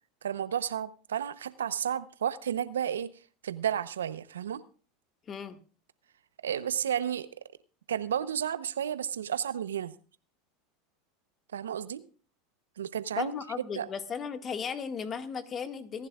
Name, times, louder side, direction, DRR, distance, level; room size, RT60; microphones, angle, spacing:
voice 1, 0.2-3.1 3.4-4.6 6.4-7.3 7.9-9.9 11.5-12.1 12.8-13.4 13.8-13.9, right 9 dB, 85° right, 15 dB, 0.8 m, -32 dB
voice 2, 5.3-5.6 13.2-16.1, left 6 dB, 35° left, 9 dB, 1.7 m, -36 dB
26.5 x 11.0 x 2.4 m, 0.38 s
hypercardioid pair, 90°, 0 cm